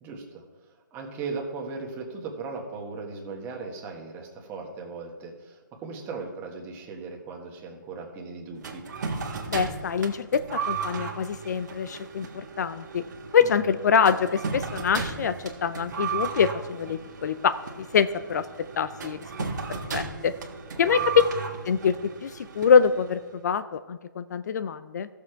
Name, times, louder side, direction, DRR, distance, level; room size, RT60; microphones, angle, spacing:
voice 1, 0.0-8.8 13.4-13.7 20.7-21.0, right 4 dB, 20° right, 1 dB, 1.6 m, -38 dB
sound 1, 8.6-23.3, right 5 dB, 60° right, 1.7 m, -35 dB
voice 2, 9.5-13.0 13.3-15.4 15.6-18.5 18.8-19.2 19.7-20.3 20.8-21.1 21.7-25.1, left 6 dB, 55° left, 14 dB, 0.5 m, -25 dB
14.5 x 7.0 x 4.6 m, 1.3 s
hypercardioid pair, 150°, 11 cm